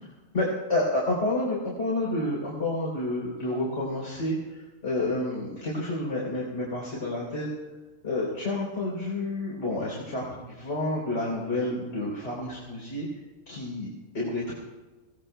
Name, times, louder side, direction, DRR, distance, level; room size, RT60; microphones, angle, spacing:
voice 1, 0.3-4.4 4.8-7.5 8.0-13.1 13.5-14.5, left 2 dB, 55° left, -5 dB, 3.9 m, -29 dB
26.0 x 17.0 x 2.3 m, 1.2 s
omnidirectional pair, 1.5 m